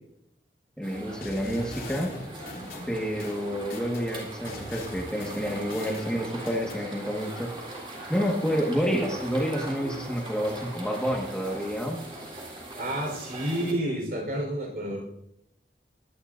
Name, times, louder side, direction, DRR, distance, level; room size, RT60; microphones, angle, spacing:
voice 1, 0.8-2.2 2.9-7.5 8.1-12.0 13.6-13.8, equal, 5° left, -1 dB, 1.6 m, -29 dB
sound 1, 0.8-13.7, right 1 dB, 30° right, 3.7 m, -40 dB
sound 2, 1.2-4.1 4.5-6.8, left 2 dB, 55° left, 2.9 m, -42 dB
voice 2, 12.8-15.0, right 1 dB, 55° right, 2 dB, 4.3 m, -30 dB
22.5 x 11.5 x 2.6 m, 0.75 s
head